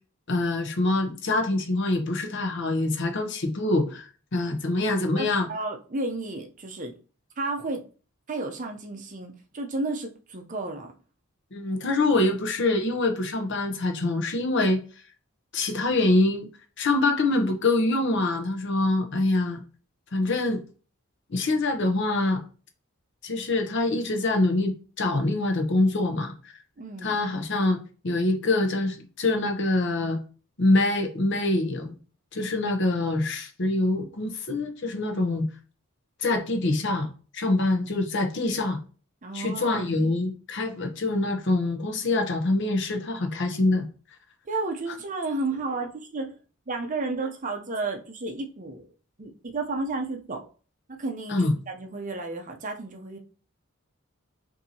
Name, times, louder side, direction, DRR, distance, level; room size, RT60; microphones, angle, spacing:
voice 1, 0.3-5.5 11.5-14.8 15.5-16.5 16.8-19.6 20.1-20.6 21.3-22.4 23.2-26.4 27.0-30.2 30.6-31.9 32.3-35.5 36.2-38.8 39.3-43.9 51.3-51.5, left 2 dB, 55° left, 0.7 m, -25 dB
voice 2, 5.1-6.9 7.4-7.8 8.3-10.9 26.8-27.1 39.2-39.8 44.5-46.3 46.7-48.9 49.2-50.5 50.9-53.2, right 3 dB, 35° right, 0.6 m, -32 dB
5.5 x 2.7 x 2.7 m
head